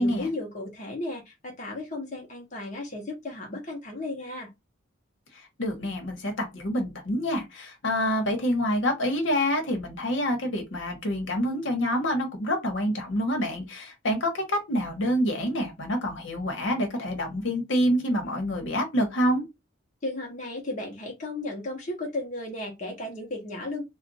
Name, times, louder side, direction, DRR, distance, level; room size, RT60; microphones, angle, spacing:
voice 1, 0.0-4.5 20.0-23.8, left 2 dB, 40° left, 0.9 m, -34 dB
voice 2, 5.6-19.4, equal, 70° left, 1.1 m, -27 dB
2.4 x 2.2 x 4.0 m
head